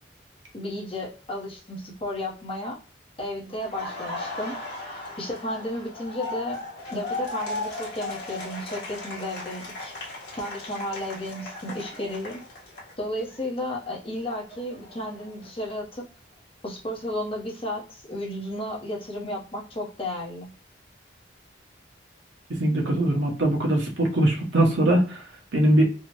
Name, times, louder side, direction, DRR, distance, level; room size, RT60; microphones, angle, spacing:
voice 1, 0.5-2.8 3.2-4.6 5.2-6.6 6.9-9.9 10.3-12.4 13.0-16.0 16.6-20.5, left 1 dB, 30° left, -4 dB, 0.8 m, -33 dB
Laughter, 3.6-13.4 13.7-15.8, left 2 dB, 60° left, 1.4 m, -37 dB
voice 2, 22.6-25.2 25.5-25.8, right 1 dB, 85° right, -1 dB, 1.0 m, -21 dB
3.4 x 2.1 x 2.9 m, 0.39 s
head